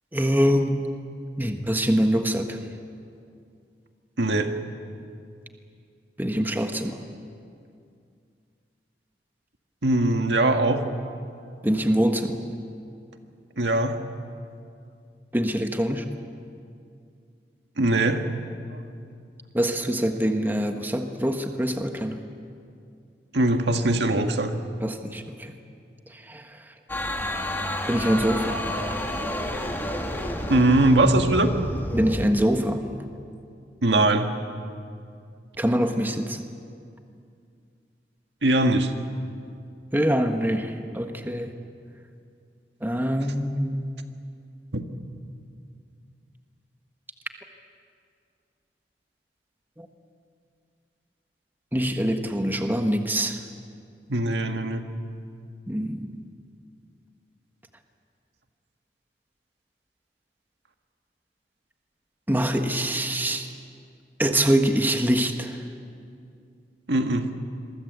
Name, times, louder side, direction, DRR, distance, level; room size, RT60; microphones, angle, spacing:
voice 1, 0.1-0.8 1.4-2.6 6.2-7.0 11.6-12.4 15.3-16.0 19.5-22.2 24.8-25.5 26.1-26.7 27.9-28.6 30.3-30.4 31.9-33.1 35.6-36.5 39.9-41.5 42.8-43.9 49.8-49.9 51.7-53.4 55.7-56.2 62.3-63.5 64.2-65.6, equal, 10° right, 5 dB, 1.4 m, -24 dB
voice 2, 4.2-4.5 9.8-10.8 13.6-14.0 17.8-18.2 18.7-18.8 23.3-24.5 28.5-30.0 30.5-31.5 33.8-34.3 38.4-38.9 44.7-44.8 54.1-54.8 66.9-67.3, right 2 dB, 80° right, 5 dB, 1.8 m, -22 dB
sound 1, 26.9-32.3, left 1 dB, 10° left, 2.0 m, -30 dB
27.0 x 23.0 x 8.2 m, 2.4 s
head